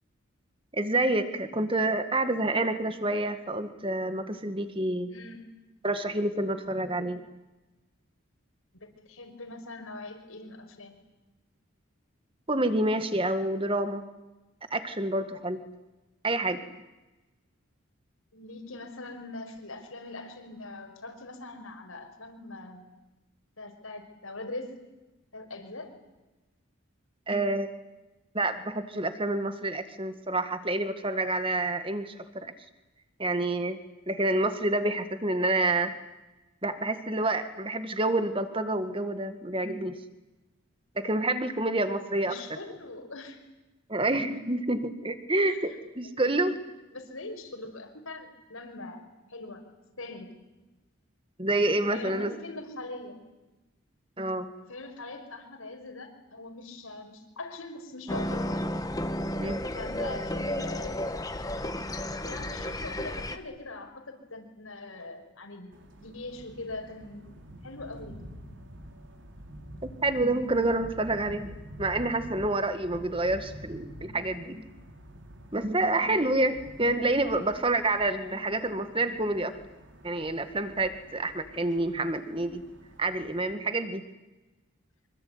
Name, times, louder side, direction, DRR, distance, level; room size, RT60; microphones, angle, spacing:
voice 1, 0.7-5.1 5.8-7.2 12.5-14.0 14.7-15.6 16.2-16.6 27.3-27.7 28.3-32.5 33.2-33.8 34.1-35.9 36.6-40.0 41.0-42.4 43.9-46.5 51.4-52.4 54.2-54.5 59.4-59.6 69.8-71.5 71.8-74.6 75.5-79.5 80.0-82.6 83.0-84.0, right 2 dB, 25° right, 9 dB, 1.9 m, -28 dB
voice 2, 5.1-5.5 8.8-11.0 18.3-22.8 23.6-24.8 25.3-25.9 42.2-43.4 44.4-44.5 45.4-45.6 46.0-46.5 46.9-49.0 49.3-49.6 50.0-50.3 51.9-53.2 54.7-58.6 59.7-61.0 62.2-65.7 66.0-67.3 67.6-68.2 77.2-77.5, left 2 dB, 85° left, 4 dB, 5.7 m, -42 dB
sound 1, 58.1-63.4, left 1 dB, 15° left, 1.3 m, -32 dB
sound 2, 65.7-83.5, equal, 60° right, 3.3 m, -48 dB
25.5 x 24.0 x 9.6 m, 1.1 s
head